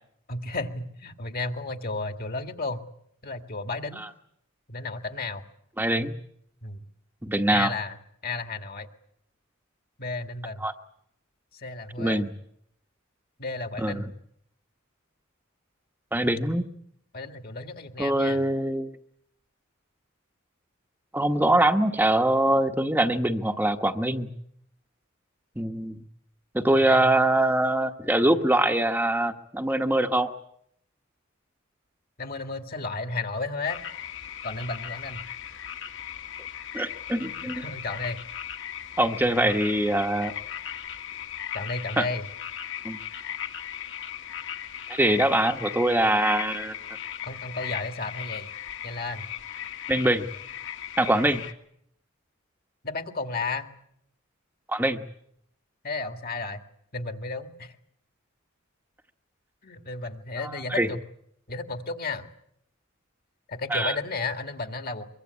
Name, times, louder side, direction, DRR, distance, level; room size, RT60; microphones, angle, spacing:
voice 1, 0.3-2.8 3.2-4.0 4.7-5.5 6.6-6.9 7.5-8.9 10.0-10.6 11.5-12.2 13.4-14.1 17.1-18.5 21.4-21.6 26.8-27.2 32.2-33.8 34.4-35.2 37.3-38.2 41.5-42.3 47.2-48.5 48.8-49.3 52.8-53.7 55.8-56.6 56.9-57.8 59.6-61.0 61.5-62.3 63.5-65.1, left 3 dB, 45° left, 7 dB, 2.0 m, -33 dB
voice 2, 5.8-6.2 7.2-7.7 10.6-10.7 12.0-12.3 13.8-14.1 16.1-16.6 18.0-18.9 21.1-24.3 25.6-26.0 26.5-30.3 36.7-37.6 39.0-40.3 42.0-42.1 42.8-43.0 45.0-46.7 49.9-50.3 51.0-51.4 54.7-55.0 60.7-60.9 63.7-63.9, right 1 dB, 10° right, 4 dB, 1.1 m, -23 dB
sound 1, 33.7-51.5, left 9 dB, 60° left, 1.9 m, -37 dB
24.5 x 24.0 x 8.3 m, 0.72 s
head